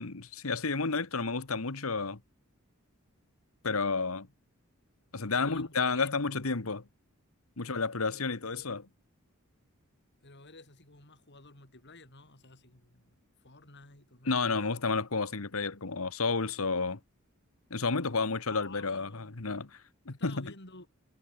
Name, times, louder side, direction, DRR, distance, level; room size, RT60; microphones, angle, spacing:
voice 1, 0.0-2.2 3.6-4.3 5.1-6.8 7.6-8.9 14.3-17.0 17.7-19.7 20.0-20.5, left 4 dB, 75° left, 1.5 m, -31 dB
voice 2, 5.3-6.1 8.1-8.3 10.2-14.3 18.5-19.4 20.1-20.9, left 3 dB, 55° left, 6.4 m, -53 dB
head